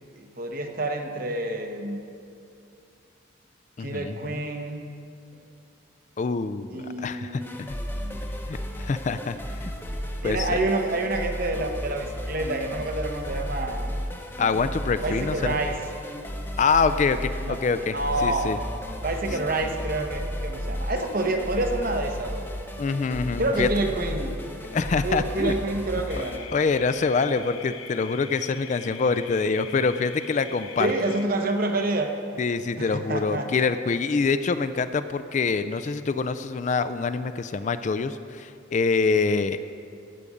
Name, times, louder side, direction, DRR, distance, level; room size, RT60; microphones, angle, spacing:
voice 1, 0.1-2.0 3.8-4.8 6.7-7.6 7.9-8.2 10.2-13.9 15.0-15.8 17.4-17.6 17.9-18.5 19.0-22.5 23.4-24.4 25.0-26.5 30.8-32.2 32.8-33.6, right 2 dB, 45° right, 4 dB, 1.0 m, -28 dB
voice 2, 3.8-4.5 6.2-7.7 8.5-9.7 10.2-10.6 14.4-15.6 16.6-18.0 18.2-18.6 22.8-23.7 24.7-25.5 26.5-30.9 32.4-39.6, left 4 dB, 35° left, 11 dB, 0.3 m, -25 dB
sound 1, 7.4-26.4, equal, 10° left, 0.8 m, -34 dB
sound 2, 26.1-31.3, left 7 dB, 85° left, 0.7 m, -43 dB
15.5 x 5.1 x 8.4 m, 2.5 s
head